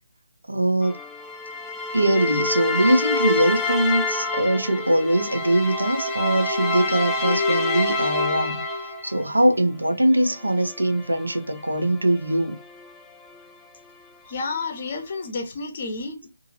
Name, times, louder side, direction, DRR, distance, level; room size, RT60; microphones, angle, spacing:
voice 1, 0.5-1.0 1.9-8.6 9.0-12.6, right 1 dB, 85° right, 1.0 m, -22 dB
sound 1, 0.8-9.3 10.1-13.4, left 2 dB, 10° left, 0.4 m, -28 dB
voice 2, 14.3-16.3, left 3 dB, 40° left, 1.0 m, -30 dB
2.9 x 2.8 x 2.8 m
figure-of-eight pair, 150°, 0 cm